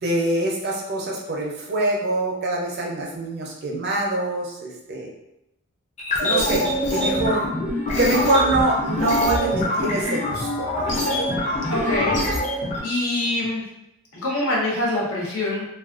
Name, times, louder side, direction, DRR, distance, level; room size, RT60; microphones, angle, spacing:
voice 1, 0.0-5.1 6.2-6.6 6.9-7.5 8.0-10.9, right 2 dB, 45° right, -1 dB, 0.4 m, -24 dB
sound 1, 6.0-12.8, left 1 dB, 30° left, 0.4 m, -24 dB
voice 2, 11.7-12.2 12.8-13.7 14.1-15.7, left 1 dB, 70° left, -3 dB, 0.7 m, -24 dB
2.3 x 2.2 x 2.4 m, 0.85 s
head